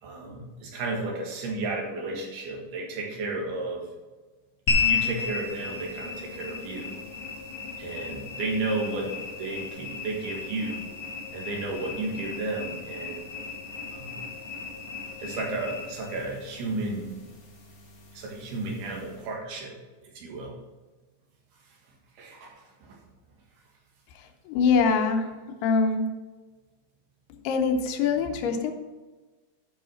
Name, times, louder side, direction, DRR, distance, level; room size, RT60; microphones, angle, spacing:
voice 1, 0.0-3.9 4.8-6.9 7.8-9.1 9.4-10.9 11.3-13.2 13.9-14.1 15.2-17.2 18.1-19.7 20.0-20.5 22.2-22.5 22.8-23.0, right 2 dB, 75° right, 0 dB, 3.7 m, -33 dB
sound 1, 4.7-19.3, left 6 dB, 40° left, 1.9 m, -34 dB
voice 2, 24.5-25.3 25.6-26.0 27.4-28.7, left 5 dB, 80° left, 4 dB, 2.9 m, -23 dB
12.5 x 5.8 x 4.4 m, 1.2 s
omnidirectional pair, 4.5 m